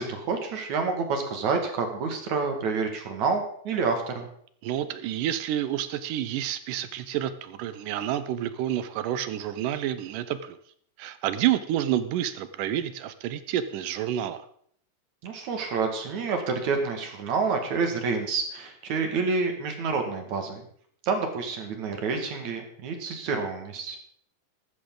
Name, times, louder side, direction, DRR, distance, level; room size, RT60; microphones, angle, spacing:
voice 1, 0.0-4.3 15.2-20.6 21.0-24.0, right 4 dB, 60° right, 5 dB, 3.1 m, -28 dB
voice 2, 4.6-10.6 11.0-14.5, right 11 dB, 75° right, 12 dB, 2.3 m, -29 dB
14.0 x 13.0 x 3.9 m, 0.62 s
omnidirectional pair, 4.0 m